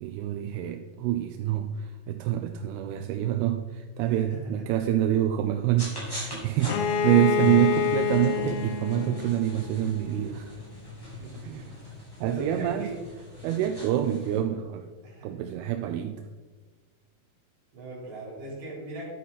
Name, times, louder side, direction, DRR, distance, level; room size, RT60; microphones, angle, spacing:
voice 1, 0.0-10.5 11.4-11.7 12.2-12.9 13.4-14.9 15.2-16.3, right 12 dB, 90° right, 7 dB, 2.5 m, -27 dB
sound 1, 5.8-14.4, left 2 dB, 5° left, 2.8 m, -40 dB
Bowed string instrument, 6.6-10.3, left 7 dB, 80° left, 2.5 m, -28 dB
voice 2, 11.2-11.6 12.2-13.0 15.0-15.3 17.7-19.1, right 2 dB, 60° right, -4 dB, 5.4 m, -38 dB
11.0 x 8.7 x 4.1 m, 1.4 s
omnidirectional pair, 4.4 m